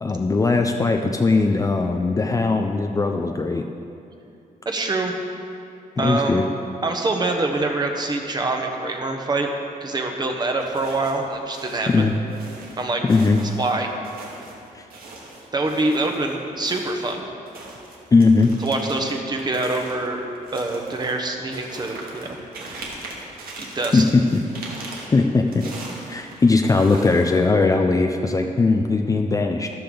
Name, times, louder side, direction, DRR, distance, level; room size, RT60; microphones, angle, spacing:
voice 1, 0.0-3.6 6.0-6.5 11.9-12.1 13.1-13.4 14.7-14.8 18.1-18.5 23.9-24.8 25.1-25.6 26.1-29.7, left 3 dB, 20° left, 4 dB, 0.5 m, -19 dB
voice 2, 4.6-5.1 6.0-6.4 6.8-9.5 9.8-12.1 12.8-13.0 13.6-13.9 15.5-17.2 18.6-20.2 20.5-22.4 23.6-24.0, right 2 dB, 30° right, 3 dB, 1.2 m, -25 dB
footsteps-snow-ice, 10.6-11.3 11.5-16.3 16.6-27.6, right 2 dB, 80° right, 2.2 m, -40 dB
13.5 x 12.5 x 3.9 m, 2.6 s
wide cardioid pair, 145°, 15 cm